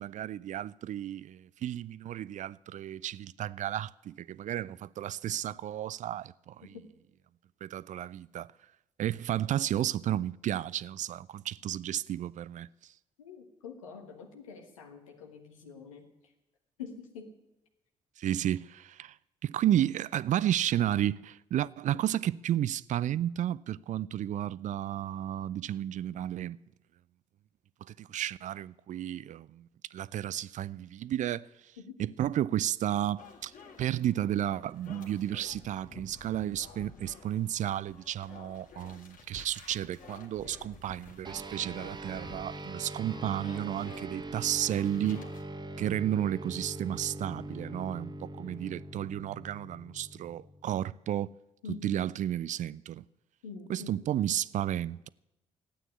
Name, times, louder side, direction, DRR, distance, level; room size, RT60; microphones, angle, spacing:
voice 1, 0.0-6.8 7.6-8.5 9.0-12.7 18.2-19.2 19.4-26.6 27.8-31.5 32.0-33.5 33.8-45.2 45.8-51.3 51.8-53.0 53.7-55.1, right 11 dB, 50° right, 0.4 m, -32 dB
voice 2, 13.2-16.0 16.8-17.3 21.9-22.0 31.8-32.0 51.6-52.0 53.4-54.0, left 5 dB, 85° left, 1.5 m, -45 dB
sound 1, 33.2-45.4, left 4 dB, 55° left, 1.8 m, -52 dB
sound 2, 41.2-51.0, right 1 dB, 25° right, 1.5 m, -42 dB
13.5 x 9.1 x 9.7 m
figure-of-eight pair, 45°, 17 cm